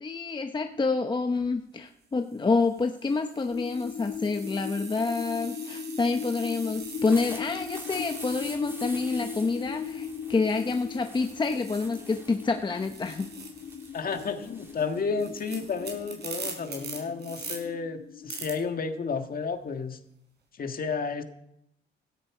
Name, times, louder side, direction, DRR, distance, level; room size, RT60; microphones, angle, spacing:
voice 1, 0.0-13.3, left 4 dB, 25° left, 6 dB, 0.8 m, -28 dB
sound 1, 1.2-1.5 2.2-12.4 12.6-17.6 18.3-18.5, right 4 dB, 55° right, 5.0 m, -44 dB
sound 2, 3.5-18.5, left 7 dB, 65° left, 1.4 m, -39 dB
sound 3, 6.8-16.1, right 1 dB, 10° right, 3.4 m, -46 dB
voice 2, 13.9-20.0 20.5-21.2, left 5 dB, 45° left, 6 dB, 1.7 m, -32 dB
16.0 x 13.0 x 4.9 m, 0.79 s
cardioid pair, 90°, 20 cm